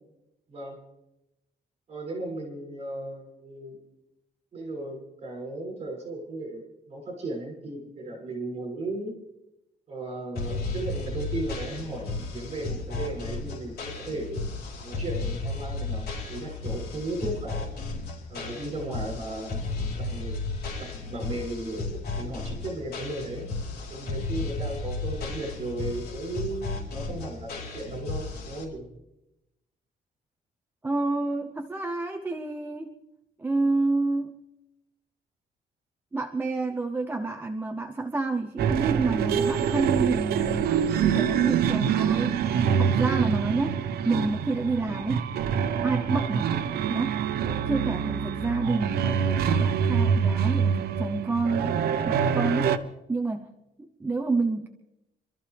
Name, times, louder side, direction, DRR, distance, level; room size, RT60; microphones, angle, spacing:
voice 1, 1.9-3.8 4.5-9.1 9.9-14.4 14.8-17.7 18.3-19.6 19.9-20.4 20.7-23.5 23.9-28.8, right 2 dB, 40° right, -1 dB, 6.9 m, -36 dB
sound 1, 10.4-28.6, left 3 dB, 80° left, 4.7 m, -34 dB
voice 2, 30.8-32.9 33.4-34.3 36.1-42.4 42.8-45.3 45.8-47.2 47.7-52.8 53.1-53.5 54.0-54.7, right 3 dB, 10° right, 3 dB, 0.7 m, -29 dB
sound 2, 38.6-52.8, right 7 dB, 75° right, 0.9 m, -25 dB
26.0 x 13.5 x 3.4 m, 0.90 s
cardioid pair, 170°, 16 cm